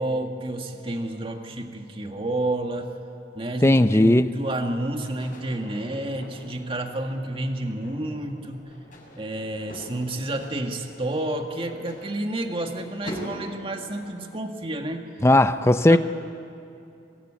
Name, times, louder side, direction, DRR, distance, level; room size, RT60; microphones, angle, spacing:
voice 1, 0.0-2.9 3.4-8.7 9.2-15.0 15.9-16.0, right 1 dB, 30° right, 1.9 m, -30 dB
voice 2, 3.6-4.2 15.2-16.0, left 1 dB, 15° left, 0.5 m, -16 dB
sound 1, 5.0-14.4, equal, 45° left, 6.7 m, -44 dB
24.0 x 19.0 x 10.0 m
head